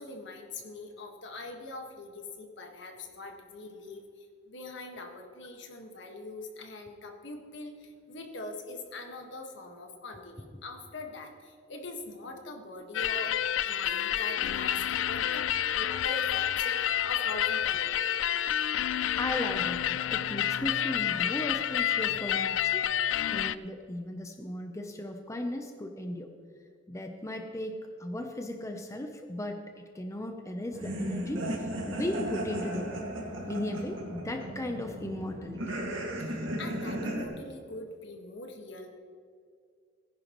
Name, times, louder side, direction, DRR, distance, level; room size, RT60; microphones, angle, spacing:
voice 1, 0.0-18.1 36.2-38.9, left 2 dB, 70° left, 3 dB, 1.6 m, -43 dB
sound 1, 12.9-23.6, left 10 dB, 85° left, 0.3 m, -29 dB
voice 2, 19.2-26.3 26.9-27.7 28.0-33.1 33.5-35.7, left 1 dB, 15° left, 4 dB, 0.7 m, -36 dB
sound 2, 30.7-37.2, right 1 dB, 75° right, 2.1 m, -35 dB
18.5 x 10.5 x 3.1 m, 2.2 s
head